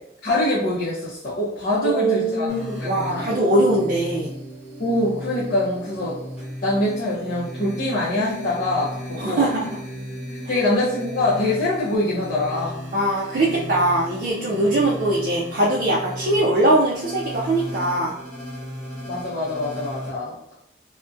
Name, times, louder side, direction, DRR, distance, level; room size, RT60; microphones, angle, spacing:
voice 1, 0.2-3.4 4.8-6.2 6.6-9.5 10.5-12.7 19.1-20.4, left 1 dB, 55° left, -9 dB, 0.5 m, -24 dB
voice 2, 1.8-4.3 9.2-9.7 10.4-10.6 12.9-18.1, right 1 dB, 50° right, -5 dB, 0.4 m, -21 dB
sound 1, 2.5-20.1, equal, 5° right, 0.8 m, -35 dB
2.4 x 2.1 x 2.5 m, 0.77 s
head